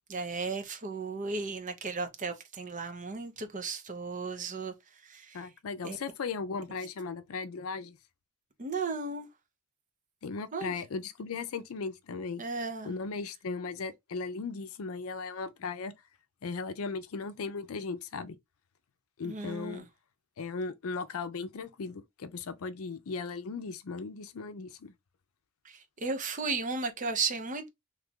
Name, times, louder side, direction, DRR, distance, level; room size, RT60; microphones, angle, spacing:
voice 1, 0.1-4.7 5.0-5.4 5.8-6.0 8.6-9.3 10.5-10.7 12.4-12.9 19.2-19.8 25.6-27.7, right 4 dB, 35° right, 0.7 m, -35 dB
voice 2, 5.3-8.0 10.2-12.4 12.8-15.9 16.4-18.4 19.2-19.8 20.4-24.9, left 4 dB, 80° left, 0.5 m, -37 dB
3.1 x 2.4 x 3.6 m
head